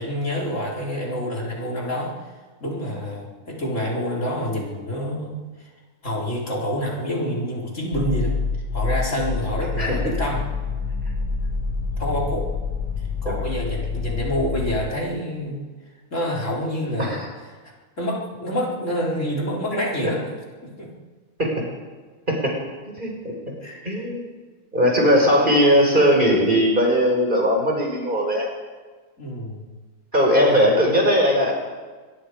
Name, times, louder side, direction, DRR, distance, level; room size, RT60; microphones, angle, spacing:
voice 1, 0.0-2.1 2.6-5.3 5.6-5.7 6.0-8.3 8.7-10.4 12.0-12.5 13.2-15.6 16.1-17.2 18.0-20.3 20.6-20.9 23.6-24.0 29.2-29.7 30.3-30.5, equal, 60° left, -3 dB, 4.7 m, -27 dB
sound 1, 7.9-14.8, left 4 dB, 20° right, 7.5 m, -27 dB
voice 2, 23.0-23.3 23.9-24.2 24.7-28.5 30.1-31.5, equal, 35° right, 0 dB, 5.3 m, -19 dB
24.5 x 21.5 x 5.1 m, 1.4 s
omnidirectional pair, 1.5 m